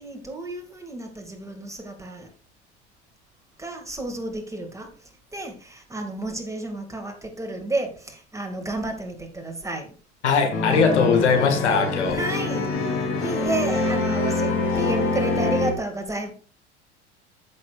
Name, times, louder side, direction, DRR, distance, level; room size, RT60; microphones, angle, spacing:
voice 1, 0.0-2.3 3.6-10.0 12.1-16.3, right 2 dB, 10° right, 4 dB, 2.2 m, -32 dB
voice 2, 10.2-12.2, left 5 dB, 75° left, 4 dB, 1.9 m, -20 dB
sound 1, 10.5-15.7, left 3 dB, 40° left, 2.7 m, -25 dB
14.0 x 6.5 x 2.4 m, 0.39 s
figure-of-eight pair, 70°, 35 cm